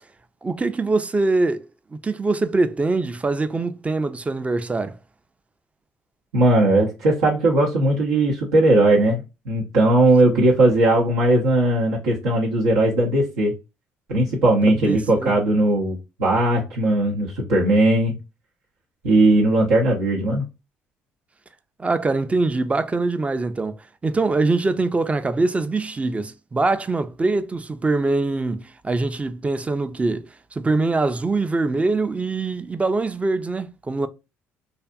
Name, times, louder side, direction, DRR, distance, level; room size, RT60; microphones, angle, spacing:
voice 1, 0.4-1.7 2.0-5.0 10.2-10.5 14.7-15.4 21.8-23.8 24.0-30.3 30.5-34.1, right 3 dB, 20° right, 0.4 m, -23 dB
voice 2, 6.3-13.5 14.1-18.1 19.0-20.4, right 1 dB, 85° right, 0.7 m, -18 dB
2.6 x 2.4 x 2.2 m
hypercardioid pair, 60°, 6 cm